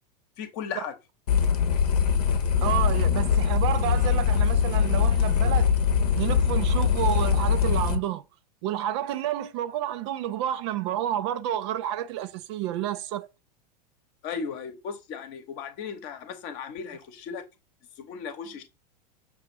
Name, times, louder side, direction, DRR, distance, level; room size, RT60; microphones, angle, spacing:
voice 1, 0.4-0.9 14.2-17.4 18.0-18.6, left 6 dB, 40° left, 0.9 m, -36 dB
sound 1, 1.3-8.0, left 7 dB, 65° left, 0.8 m, -22 dB
voice 2, 2.6-5.7 6.2-8.2 8.6-13.3, right 12 dB, 45° right, 0.4 m, -30 dB
6.1 x 2.5 x 3.0 m
figure-of-eight pair, 90°, 21 cm